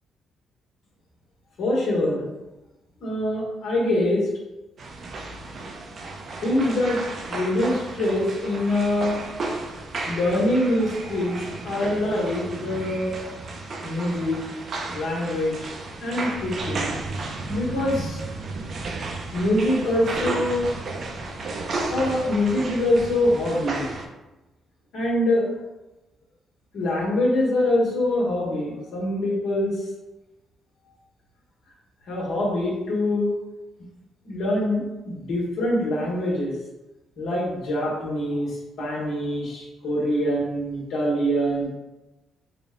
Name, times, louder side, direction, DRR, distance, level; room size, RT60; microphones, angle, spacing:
voice 1, 1.6-2.3 3.0-4.3 6.4-7.0 7.3-9.2 10.1-11.4 11.6-13.1 13.8-14.4 14.9-15.7 16.0-16.9 17.5-18.2 19.3-20.7 21.9-23.9 24.9-25.5 26.7-29.9 32.1-33.3 34.2-36.5 37.2-41.7, left 1 dB, 75° left, -4 dB, 1.2 m, -24 dB
sound 1, 4.8-24.1, right 3 dB, 55° right, 0.5 m, -33 dB
3.3 x 2.2 x 3.7 m, 1.0 s
cardioid pair, 90°, 0 cm